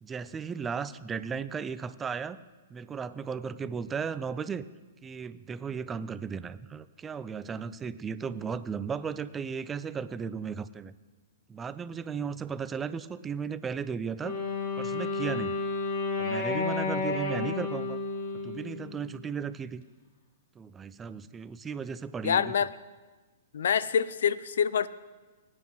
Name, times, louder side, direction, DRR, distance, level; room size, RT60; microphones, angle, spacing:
voice 1, 0.0-2.4 2.7-4.6 5.0-10.9 11.5-14.4 14.8-15.6 16.2-18.0 18.4-19.8 20.6-22.5, right 6 dB, 15° right, 14 dB, 0.5 m, -35 dB
Wind instrument woodwind instrument, 14.2-19.3, left 3 dB, 50° left, 2.0 m, -31 dB
voice 2, 22.2-22.7 23.5-24.9, left 7 dB, 65° left, 17 dB, 0.5 m, -26 dB
21.0 x 9.5 x 3.1 m, 1.3 s
hypercardioid pair, 115°, 0 cm